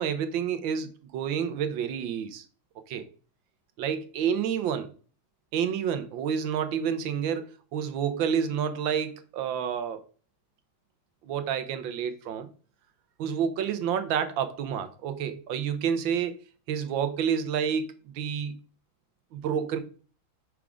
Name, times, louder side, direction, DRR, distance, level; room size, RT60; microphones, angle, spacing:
voice 1, 0.0-2.4 2.9-3.0 3.8-4.9 5.5-10.0 11.2-12.5 13.2-16.3 16.7-17.9 18.1-18.6 19.3-19.8, right 8 dB, 75° right, 1.4 m, -29 dB
6.1 x 3.5 x 4.9 m
omnidirectional pair, 2.3 m